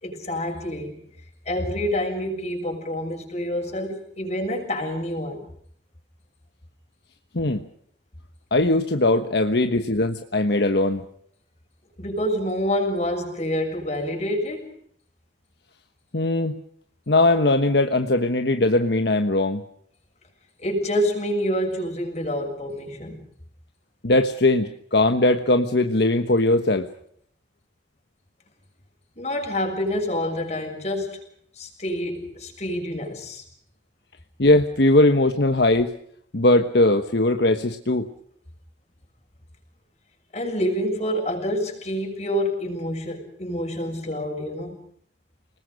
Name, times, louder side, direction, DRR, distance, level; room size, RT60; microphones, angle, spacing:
voice 1, 0.0-1.0 1.4-5.5 12.0-14.7 20.6-23.2 29.2-31.2 31.6-33.4 40.3-44.8, equal, 40° left, 3 dB, 6.6 m, -27 dB
voice 2, 8.5-11.0 16.1-16.5 17.1-19.6 24.0-26.9 34.4-35.9 36.3-38.1, left 2 dB, 70° left, 6 dB, 1.3 m, -20 dB
30.0 x 20.0 x 6.4 m, 0.68 s
head